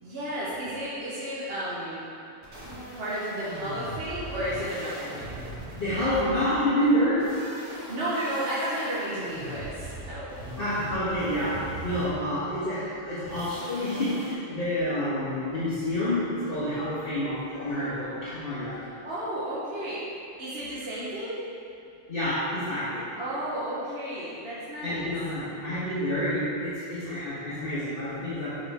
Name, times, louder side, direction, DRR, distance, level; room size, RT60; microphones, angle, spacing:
voice 1, 0.0-2.1 3.0-5.4 7.9-10.3 19.0-20.0 20.4-21.4 23.2-25.1, right 1 dB, 55° right, -9 dB, 1.4 m, -32 dB
sound 1, 2.4-6.5 7.1-12.3 13.3-14.3, right 1 dB, 25° right, 1.7 m, -40 dB
voice 2, 5.8-7.3 10.6-18.8 22.1-23.0 24.8-28.6, equal, 50° left, -12 dB, 1.6 m, -28 dB
8.3 x 5.5 x 3.6 m, 2.6 s
omnidirectional pair, 1.2 m